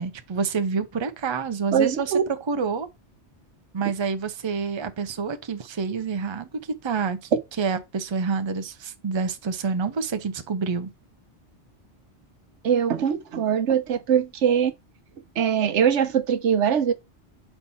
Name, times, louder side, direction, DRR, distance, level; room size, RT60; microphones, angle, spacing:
voice 1, 0.0-2.1 2.5-2.9 3.7-6.5 6.8-7.2 7.6-10.9, right 5 dB, 30° right, 0.6 m, -27 dB
voice 2, 1.7-2.2 12.6-14.7 15.4-16.9, right 8 dB, 85° right, 1.1 m, -22 dB
4.4 x 4.2 x 5.5 m
omnidirectional pair, 1.2 m